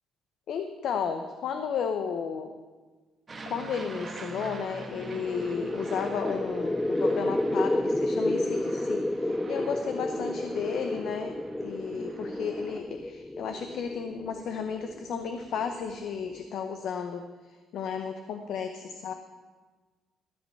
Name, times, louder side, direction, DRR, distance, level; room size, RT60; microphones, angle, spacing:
voice 1, 0.5-2.6 3.5-11.4 11.6-19.1, left 6 dB, 55° left, 6 dB, 0.7 m, -33 dB
Aircraft, 3.3-12.8, right 2 dB, 20° right, 1.2 m, -43 dB
sound 1, 5.0-16.5, left 1 dB, 5° left, 0.3 m, -31 dB
14.0 x 5.3 x 8.5 m, 1.3 s
cardioid pair, 175°, 0 cm